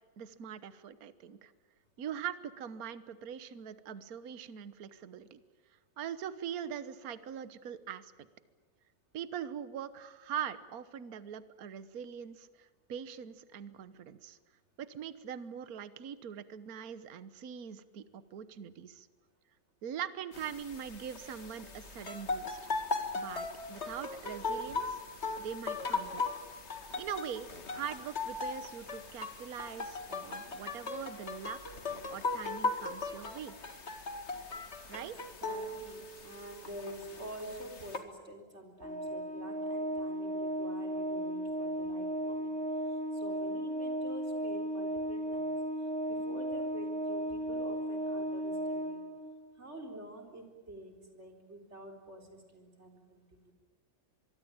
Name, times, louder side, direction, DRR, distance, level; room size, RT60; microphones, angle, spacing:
voice 1, 0.2-1.5 2.0-5.4 6.0-8.3 9.1-14.4 14.8-19.1 19.8-22.6 23.1-25.0 25.4-26.2 27.0-31.6 31.9-33.5 34.9-35.1, right 8 dB, 55° right, 13 dB, 1.5 m, -42 dB
sound 1, 20.3-38.0, left 3 dB, 35° left, 2.2 m, -38 dB
voice 2, 35.4-42.5 42.9-45.6 46.1-49.0 49.6-53.5, right 1 dB, 35° right, 2 dB, 4.4 m, -48 dB
Organ, 38.8-49.5, right 1 dB, 5° left, 0.7 m, -35 dB
25.0 x 23.0 x 8.8 m, 1.3 s
omnidirectional pair, 2.0 m